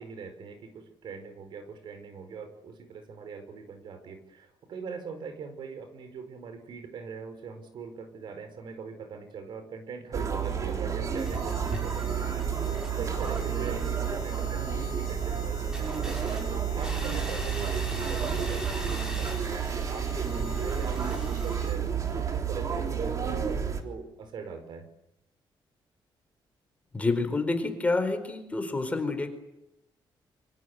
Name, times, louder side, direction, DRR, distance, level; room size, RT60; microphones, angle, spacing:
voice 1, 0.0-12.3 12.6-16.3 16.7-21.8 22.1-24.9, right 5 dB, 65° right, 9 dB, 4.8 m, -41 dB
sound 1, 10.1-23.8, right 7 dB, 40° right, 3.4 m, -30 dB
sound 2, 11.2-21.7, left 1 dB, 10° right, 7.1 m, -41 dB
voice 2, 26.9-29.3, left 3 dB, 15° left, 7 dB, 4.4 m, -28 dB
27.0 x 25.0 x 8.2 m, 0.89 s
wide cardioid pair, 155°, 8 cm